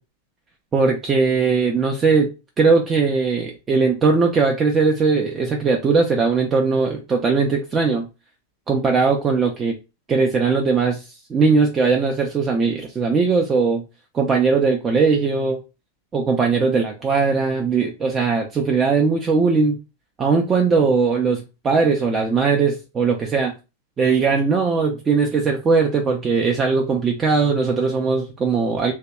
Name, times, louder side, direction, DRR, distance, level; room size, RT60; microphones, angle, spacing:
voice 1, 0.7-2.3 2.6-8.1 8.7-9.8 10.1-13.8 14.1-15.6 16.1-19.8 20.2-23.5 24.0-28.9, right 4 dB, 20° right, 1 dB, 0.4 m, -19 dB
2.7 x 2.2 x 3.3 m, 0.28 s
figure-of-eight pair, 90°, 0 cm